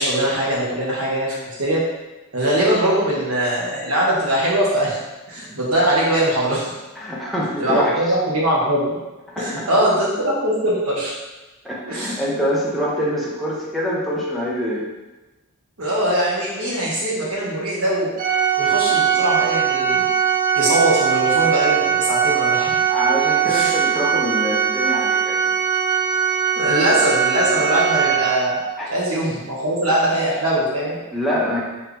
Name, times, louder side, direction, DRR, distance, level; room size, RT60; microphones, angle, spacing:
voice 1, 0.0-1.8 2.3-5.0 5.3-6.7 7.6-9.0 9.4-11.1 11.9-12.1 15.8-18.1 18.6-20.1 20.5-22.8 23.4-23.7 26.5-28.6 28.9-31.0, right 1 dB, 75° right, -5 dB, 1.4 m, -21 dB
voice 2, 7.0-8.0 9.3-9.6 11.6-14.8 22.9-25.5 28.8-28.9 31.1-31.6, equal, ahead, -6 dB, 0.8 m, -25 dB
Organ, 18.2-28.8, right 8 dB, 40° right, 0.5 m, -20 dB
4.4 x 3.3 x 3.4 m, 1.1 s
head